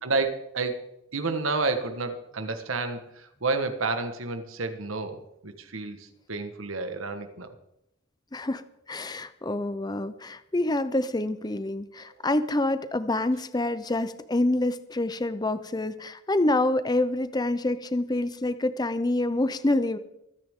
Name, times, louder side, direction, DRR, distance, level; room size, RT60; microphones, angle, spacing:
voice 1, 0.0-0.8 1.1-7.5, right 3 dB, 85° right, 7 dB, 1.4 m, -30 dB
voice 2, 8.3-8.6 8.9-20.0, left 2 dB, 20° left, 12 dB, 0.6 m, -27 dB
24.5 x 9.6 x 3.7 m, 0.82 s
head